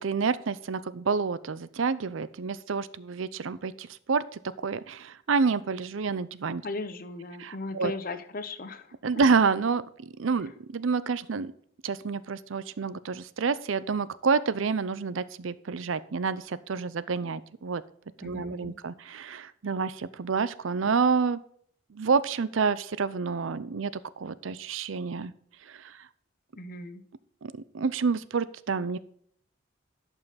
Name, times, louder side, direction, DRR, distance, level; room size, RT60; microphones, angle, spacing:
voice 1, 0.0-6.6 7.4-7.9 9.0-11.5 11.8-17.8 18.2-21.4 21.9-25.3 25.7-26.0 27.4-29.0, right 5 dB, 75° right, 17 dB, 0.5 m, -28 dB
voice 2, 6.6-8.9 18.2-18.8 26.6-27.0, left 3 dB, 45° left, 10 dB, 0.8 m, -37 dB
11.5 x 5.5 x 4.1 m, 0.65 s
head